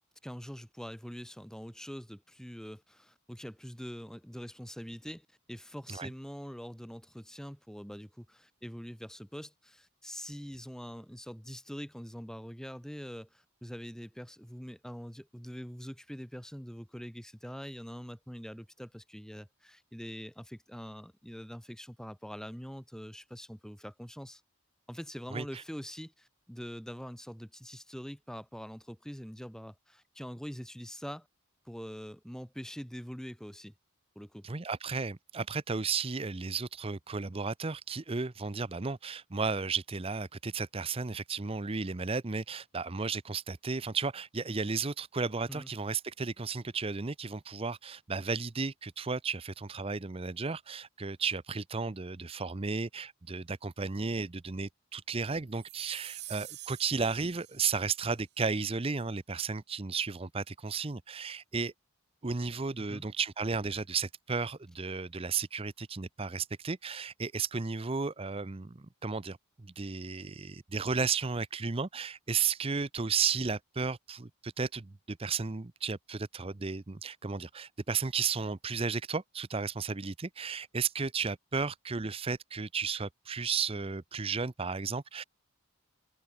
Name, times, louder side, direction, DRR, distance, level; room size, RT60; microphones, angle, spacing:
voice 1, 0.2-24.4 24.9-31.3 31.6-33.7 34.1-34.5 45.5-45.7 62.9-63.1, equal, 5° left, 1.5 m, -44 dB
voice 2, 25.3-25.6 34.4-61.7 62.2-68.7 69.0-69.4 69.8-85.2, right 5 dB, 25° right, 0.6 m, -34 dB
sound 1, 55.5-58.1, right 16 dB, 50° right, 1.7 m, -46 dB
head